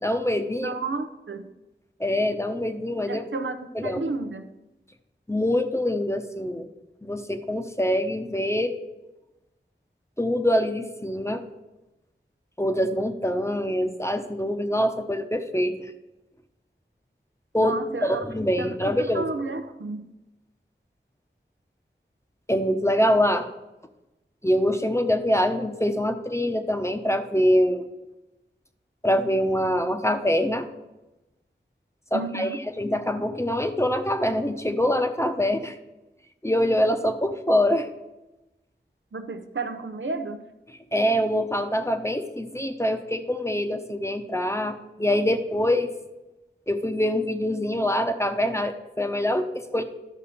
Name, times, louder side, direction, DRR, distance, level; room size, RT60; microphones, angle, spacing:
voice 1, 0.0-0.7 2.0-3.2 3.7-4.0 5.3-6.7 7.0-8.7 10.2-11.4 12.6-15.9 17.5-17.7 18.1-19.3 22.5-23.5 24.4-27.9 29.0-30.6 32.1-35.8 36.4-37.9 40.9-45.9 46.7-49.8, equal, 15° left, 7 dB, 0.9 m, -24 dB
voice 2, 0.6-1.5 3.1-4.5 17.6-18.2 18.6-20.1 32.1-32.6 39.1-40.4, right 3 dB, 75° right, 8 dB, 0.7 m, -32 dB
11.0 x 6.3 x 4.2 m, 1.0 s
wide cardioid pair, 40°, 20 cm